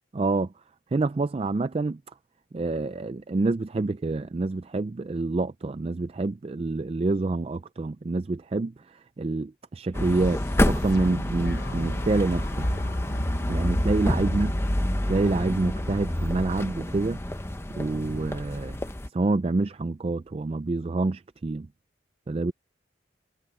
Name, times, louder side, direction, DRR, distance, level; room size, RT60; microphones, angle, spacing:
voice 1, 0.1-0.5 0.9-2.0 2.5-12.7 13.5-14.5 15.1-17.2 17.7-18.8 19.1-21.7 22.3-22.5, right 3 dB, 30° right, 0.3 m, -27 dB
sound 1, 9.9-19.1, left 1 dB, 15° left, 0.8 m, -28 dB
sound 2, 10.0-16.2, equal, 65° left, 4.5 m, -34 dB
head